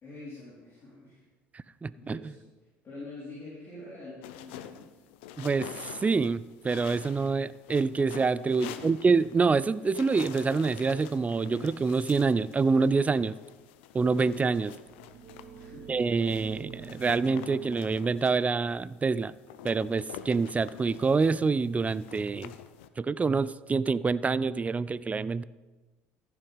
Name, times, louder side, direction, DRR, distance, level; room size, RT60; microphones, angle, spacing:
voice 1, 0.0-1.2 2.0-2.4 2.8-5.0 8.6-8.9 15.5-16.0, left 2 dB, 35° left, -9 dB, 4.3 m, -46 dB
voice 2, 1.8-2.2 5.4-5.7 6.0-13.3 13.9-14.7 15.9-19.3 19.6-22.5 23.0-25.4, right 4 dB, 20° right, 18 dB, 0.4 m, -26 dB
sound 1, 4.2-22.9, left 11 dB, 75° left, 0.6 m, -47 dB
sound 2, 14.9-20.4, right 8 dB, 55° right, 1.2 m, -48 dB
14.5 x 6.3 x 5.1 m, 1.2 s
hypercardioid pair, 70°, 6 cm